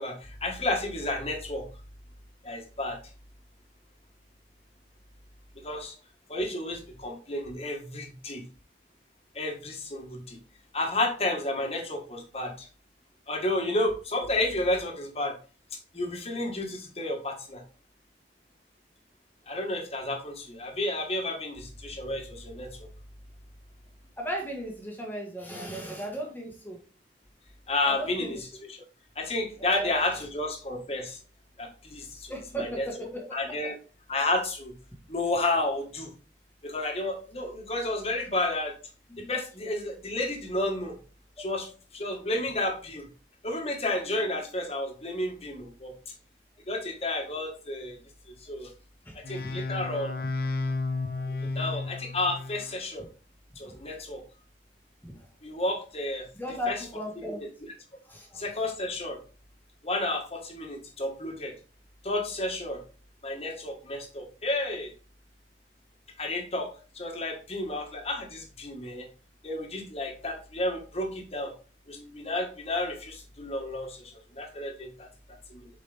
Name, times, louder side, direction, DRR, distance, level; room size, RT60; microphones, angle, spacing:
voice 1, 0.0-1.7 2.4-3.0 5.6-5.9 6.3-8.4 9.3-10.4 10.7-12.7 13.3-15.3 15.7-17.6 19.5-22.9 27.7-28.4 28.7-28.8 29.1-31.2 31.6-32.9 33.3-33.7 34.1-34.7 35.1-36.1 36.6-38.7 39.2-41.0 41.4-43.1 43.4-45.9 46.7-48.0 48.4-48.7 49.1-50.1 51.4-53.1 53.5-54.2 55.4-56.3 56.7-56.8 57.2-57.3 58.3-59.2 59.8-61.5 62.0-62.8 63.2-64.9 66.2-66.7 66.9-69.1 69.4-71.5 71.9-75.1 75.5-75.7, left 2 dB, 35° left, 2 dB, 1.7 m, -31 dB
voice 2, 24.2-26.8 27.8-28.4 29.6-30.2 32.3-33.5 39.1-39.7 49.0-49.1 53.6-53.8 55.0-55.3 56.3-57.5 58.0-58.5, equal, 10° left, 0 dB, 1.6 m, -36 dB
sound 1, 49.2-52.9, left 3 dB, 55° left, 0.9 m, -32 dB
7.7 x 5.1 x 3.5 m, 0.38 s
head